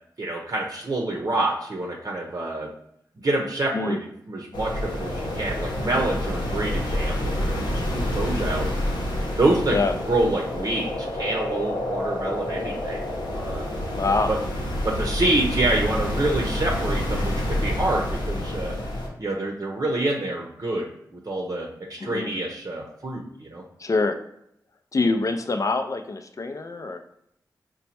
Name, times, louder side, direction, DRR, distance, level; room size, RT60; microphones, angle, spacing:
voice 1, 0.2-2.7 3.2-4.0 4.3-9.8 10.1-13.0 13.3-13.8 14.3-14.4 14.8-18.8 19.2-23.6, right 2 dB, 55° right, 0 dB, 0.7 m, -27 dB
sound 1, 4.5-19.1, left 1 dB, 85° left, 0.8 m, -28 dB
voice 2, 13.9-14.3 22.0-22.3 23.8-24.2 24.9-27.0, left 3 dB, 45° left, 8 dB, 0.5 m, -25 dB
4.2 x 2.2 x 4.2 m, 0.73 s
cardioid pair, 40°, 7 cm